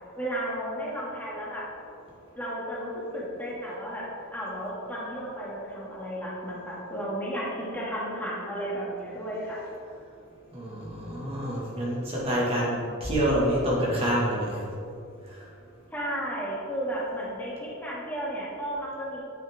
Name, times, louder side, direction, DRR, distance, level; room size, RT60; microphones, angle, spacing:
voice 1, 0.2-1.6 2.4-4.0 4.3-9.6 15.9-19.2, equal, 10° left, -7 dB, 2.3 m, -33 dB
voice 2, 10.5-14.7 15.3-15.4, equal, 30° right, -6 dB, 2.0 m, -27 dB
9.4 x 9.3 x 3.7 m, 2.5 s
head